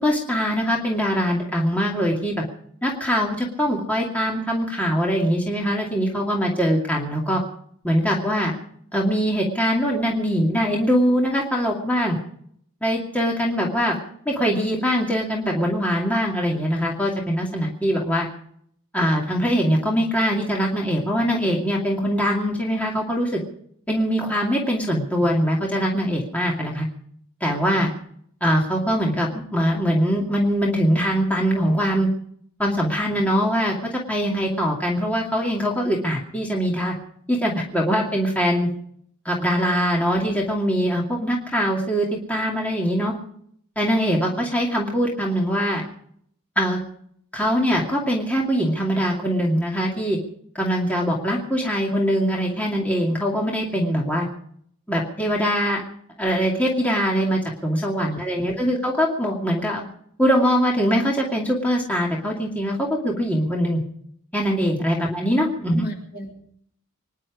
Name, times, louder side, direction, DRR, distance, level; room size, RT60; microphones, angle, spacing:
voice 1, 0.0-2.4 2.8-7.4 7.8-8.5 8.9-12.2 12.8-14.0 14.3-18.3 18.9-23.4 23.9-26.9 27.4-27.9 28.4-32.1 32.6-36.9 37.3-38.7 39.2-43.1 43.8-45.8 46.6-46.8 47.3-50.2 50.5-54.3 54.9-55.8 56.2-59.8 60.2-63.8 64.3-65.8, equal, 5° left, -2 dB, 2.4 m, -22 dB
voice 2, 58.1-58.8 65.0-65.1 65.7-66.3, right 1 dB, 45° left, -1 dB, 4.9 m, -38 dB
25.0 x 11.0 x 5.0 m, 0.66 s
head